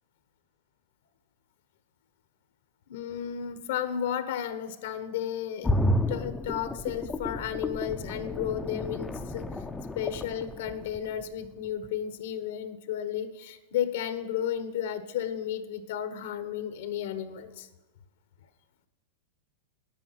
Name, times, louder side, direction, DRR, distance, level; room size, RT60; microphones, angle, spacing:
voice 1, 2.9-9.5 10.0-17.7, left 9 dB, 70° left, 10 dB, 1.2 m, -33 dB
sound 1, 5.6-11.5 11.8-11.9, left 1 dB, 10° left, 0.6 m, -31 dB
10.5 x 9.0 x 5.8 m, 1.1 s
supercardioid pair, 140°, 0 cm